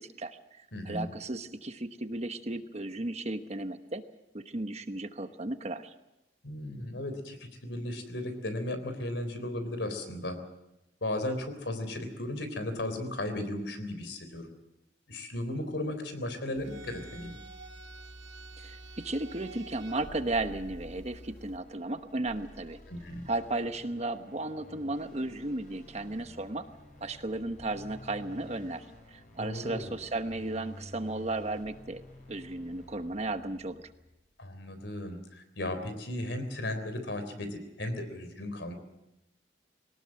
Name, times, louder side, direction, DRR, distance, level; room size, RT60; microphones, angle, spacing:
voice 1, 0.2-4.0 4.3-5.9 18.6-22.8 23.3-26.7 27.0-28.9 29.1-32.0 32.3-33.8, right 2 dB, 35° right, 9 dB, 1.1 m, -35 dB
voice 2, 0.7-1.1 6.4-10.4 11.0-14.5 15.1-17.3 22.9-23.3 29.4-29.9 34.4-38.7, left 1 dB, 75° left, 9 dB, 3.7 m, -35 dB
sound 1, 16.6-21.6, right 2 dB, 90° right, 2.0 m, -48 dB
sound 2, 19.7-34.3, left 1 dB, 45° left, 6.2 m, -52 dB
21.5 x 18.5 x 7.6 m, 0.92 s
head